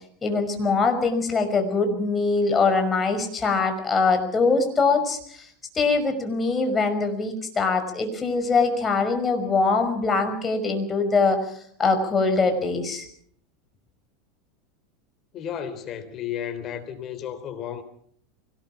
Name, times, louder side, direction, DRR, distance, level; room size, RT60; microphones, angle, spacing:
voice 1, 0.2-5.5 5.7-11.4 11.8-13.1, left 4 dB, 20° left, 5.6 m, -23 dB
voice 2, 15.3-17.8, left 9 dB, 40° left, 3.6 m, -33 dB
24.5 x 18.5 x 6.1 m
hypercardioid pair, 85°, 0 cm